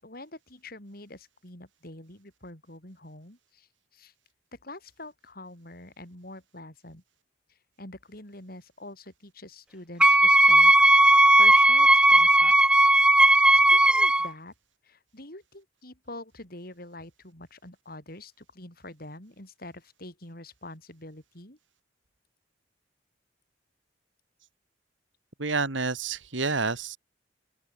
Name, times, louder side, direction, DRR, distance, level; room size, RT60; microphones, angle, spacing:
voice 1, 0.0-3.7 3.9-4.1 4.5-7.0 7.5-12.6 13.5-14.5 14.8-21.6, left 2 dB, 50° left, 7.6 m, -45 dB
Wind instrument woodwind instrument, 10.0-14.3, right 1 dB, 5° right, 0.6 m, -17 dB
voice 2, 25.4-27.0, right 4 dB, 85° right, 2.1 m, -28 dB
open air
head